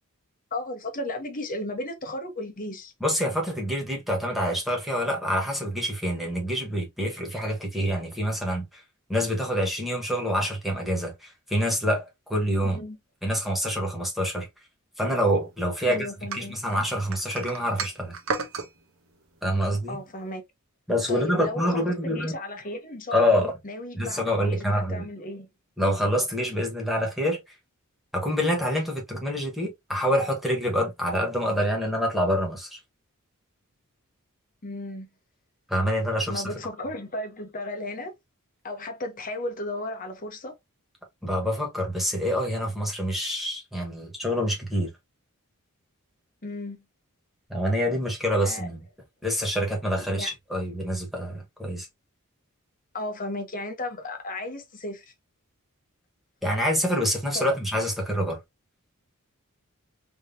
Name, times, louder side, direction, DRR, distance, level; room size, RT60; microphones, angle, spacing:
voice 1, 0.5-2.9 12.7-13.0 15.9-16.6 19.9-20.4 21.1-25.5 34.6-35.1 36.3-38.1 38.6-40.5 46.4-46.8 48.4-48.7 50.0-50.3 52.9-55.1 57.3-57.4, left 1 dB, 40° left, 1.0 m, -35 dB
voice 2, 3.0-8.8 9.1-12.8 13.2-14.5 15.0-16.1 16.3-18.1 19.4-20.0 20.9-22.3 23.1-23.5 24.0-25.0 25.8-27.4 28.1-32.8 35.7-36.4 41.2-44.9 47.5-48.8 49.2-51.9 56.4-58.4, equal, ahead, 1.4 m, -26 dB
sound 1, 16.3-18.7, right 4 dB, 65° right, 0.9 m, -33 dB
3.5 x 3.1 x 2.7 m
head